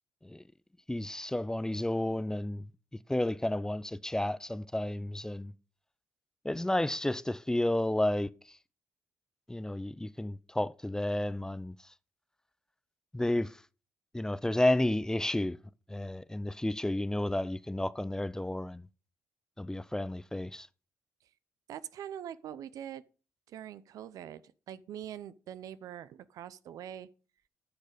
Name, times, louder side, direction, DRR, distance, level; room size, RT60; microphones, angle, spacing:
voice 1, 0.9-2.6 3.1-5.5 6.4-8.3 9.5-11.8 13.1-13.6 14.1-15.6 15.9-18.9 19.6-20.7, left 1 dB, 10° left, 0.6 m, -31 dB
voice 2, 21.7-23.0 23.5-24.4 24.7-27.1, right 10 dB, 75° right, 0.6 m, -43 dB
10.5 x 6.5 x 5.0 m
supercardioid pair, 55°, 6 cm